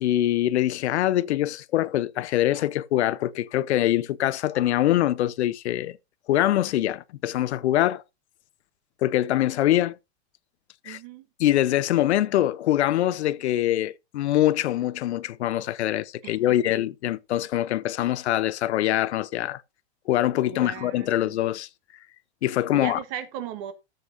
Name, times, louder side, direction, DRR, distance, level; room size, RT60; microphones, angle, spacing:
voice 1, 0.0-6.0 6.3-8.0 9.0-10.0 10.9-11.0 11.4-19.6 20.1-21.7 22.4-23.0, left 13 dB, 80° left, 0.8 m, -24 dB
voice 2, 10.8-11.3 16.2-16.7 20.4-21.4 22.7-23.7, right 10 dB, 30° right, 1.2 m, -37 dB
13.5 x 7.9 x 2.6 m
supercardioid pair, 175°, 33 cm